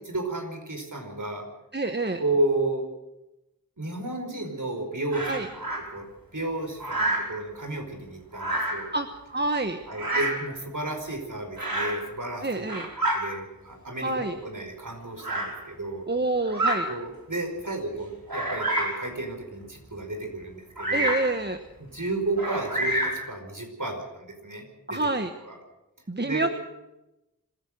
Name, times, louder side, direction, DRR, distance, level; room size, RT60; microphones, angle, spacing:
voice 1, 0.0-1.4 2.2-2.8 3.8-5.5 5.9-8.9 9.9-12.7 13.1-16.1 16.9-21.1 21.8-24.6 24.9-25.1 25.4-25.5 26.2-26.5, right 2 dB, 65° right, 4 dB, 5.1 m, -32 dB
voice 2, 1.7-2.2 5.3-5.5 8.9-9.8 12.4-12.9 14.0-14.3 16.1-16.9 20.9-21.6 24.9-25.3 26.1-26.5, right 2 dB, 30° right, 6 dB, 1.2 m, -27 dB
Bird vocalization bird call bird song, 5.1-5.8 6.8-7.3 8.3-8.9 9.9-10.5 11.6-12.0 12.5-13.2 14.1-14.2 15.2-15.5 16.4-16.8 17.4-17.5 18.3-19.0 20.8-21.3 22.4-23.2, right 1 dB, 90° right, 5.1 m, -28 dB
26.0 x 15.5 x 6.6 m, 0.95 s
wide cardioid pair, 40°, 34 cm